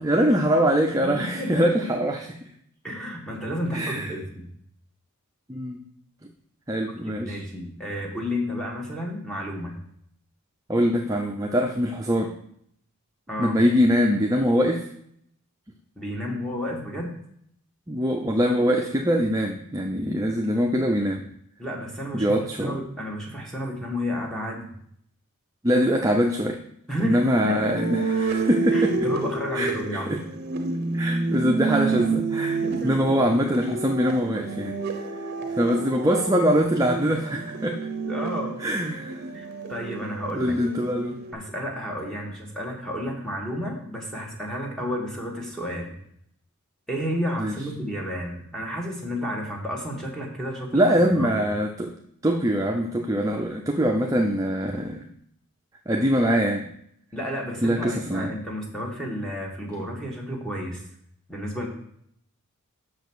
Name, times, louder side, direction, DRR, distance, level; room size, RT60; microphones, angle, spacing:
voice 1, 0.0-2.4 3.7-4.1 5.5-5.8 6.7-7.4 10.7-12.3 13.4-14.9 17.9-21.2 22.1-22.8 25.6-26.6 27.0-29.0 29.5-30.2 30.9-32.6 32.8-35.1 35.5-37.8 38.6-39.2 40.3-41.2 47.4-47.5 50.7-51.9 52.2-55.0 55.9-56.7 57.6-58.3, equal, 15° right, 2 dB, 0.5 m, -23 dB
voice 2, 1.0-2.0 2.8-4.5 7.0-9.7 13.3-13.6 16.0-17.1 21.6-22.3 22.6-24.7 26.9-27.9 28.7-30.1 32.6-33.2 38.0-38.6 39.3-40.5 41.3-45.9 46.9-50.8 51.1-51.5 57.1-60.8 61.3-61.7, equal, 5° left, -2 dB, 1.5 m, -31 dB
sound 1, 27.6-41.3, right 4 dB, 45° right, 0.8 m, -29 dB
6.5 x 5.1 x 6.2 m, 0.70 s
head